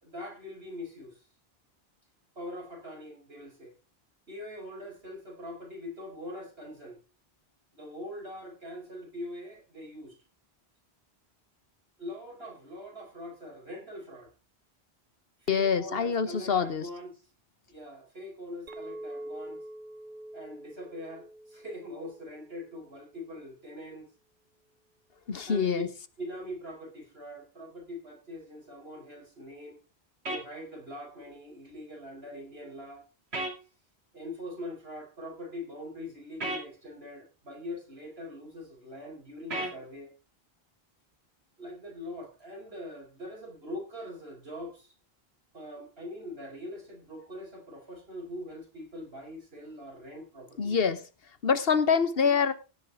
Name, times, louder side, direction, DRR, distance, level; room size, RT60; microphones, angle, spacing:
voice 1, 0.0-1.2 2.3-3.7 4.3-7.0 7.7-10.2 12.0-14.3 15.4-17.2 17.7-19.6 20.3-24.1 25.5-25.8 26.2-29.8 30.3-33.0 34.1-40.1 41.6-44.9 45.5-50.7, left 1 dB, 75° right, 4.8 m, -42 dB
voice 2, 15.5-16.9 25.3-25.9 50.6-51.0 51.4-52.5, left 6 dB, 70° left, 1.3 m, -25 dB
Chink clink, 18.7-23.2, right 1 dB, 55° right, 1.1 m, -45 dB
sound 1, 30.3-30.4 33.3-33.6 36.4-36.6 39.5-39.8, right 2 dB, 90° right, 2.8 m, -32 dB
16.5 x 8.3 x 3.5 m
omnidirectional pair, 1.0 m